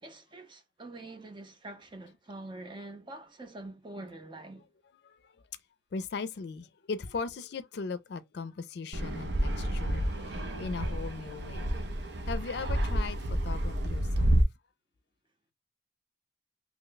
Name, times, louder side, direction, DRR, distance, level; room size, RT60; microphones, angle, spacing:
voice 1, 0.0-4.7, right 2 dB, 30° right, 0.6 m, -45 dB
voice 2, 5.9-11.7 12.3-13.2 13.4-14.3, left 4 dB, 65° left, 0.4 m, -38 dB
Fixed-wing aircraft airplane, 8.9-14.4, right 1 dB, 75° right, 0.7 m, -29 dB
3.0 x 2.1 x 3.8 m
head